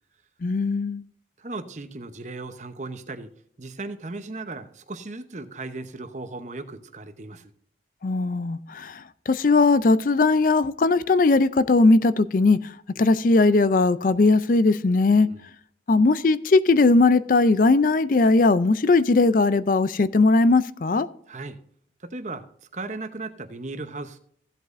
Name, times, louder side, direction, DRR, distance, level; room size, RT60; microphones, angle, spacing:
voice 1, 0.4-1.0 8.0-12.6 13.0-15.3 15.9-21.1, left 3 dB, 45° left, 0.4 m, -19 dB
voice 2, 1.4-3.3 3.6-7.5 15.1-15.4 21.3-21.6 22.0-22.4 22.7-24.2, right 3 dB, 40° right, 0.8 m, -36 dB
15.5 x 8.1 x 2.6 m
head